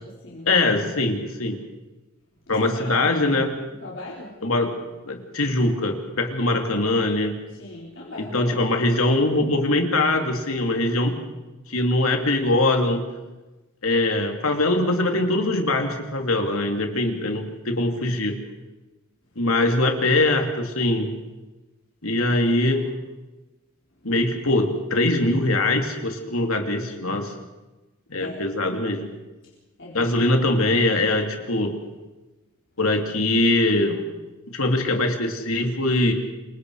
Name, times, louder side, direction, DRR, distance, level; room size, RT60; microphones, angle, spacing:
voice 1, 0.5-1.6 2.5-3.5 4.4-4.7 5.1-7.3 8.2-11.2 11.7-13.0 13.8-18.3 19.4-21.1 22.0-22.8 24.0-27.3 28.1-29.1 29.9-31.7 32.8-34.0 34.5-36.1, left 2 dB, 80° left, 4 dB, 3.0 m, -22 dB
voice 2, 2.5-3.3 3.8-4.3 6.4-6.7 7.6-8.8 28.2-28.4 29.8-30.4, left 2 dB, 60° left, -4 dB, 4.2 m, -38 dB
27.0 x 23.5 x 5.0 m, 1.1 s
head